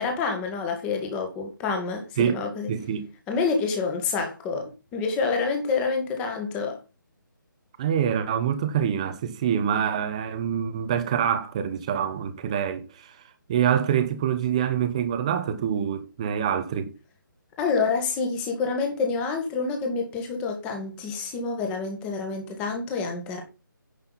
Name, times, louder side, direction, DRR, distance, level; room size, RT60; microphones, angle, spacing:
voice 1, 0.0-2.7 3.3-6.8 17.6-23.4, left 4 dB, 10° left, 1.6 m, -28 dB
voice 2, 2.7-3.0 7.8-13.1 13.5-16.9, right 8 dB, 20° right, 0.9 m, -25 dB
10.0 x 6.5 x 4.1 m
hypercardioid pair, 170°, 11 cm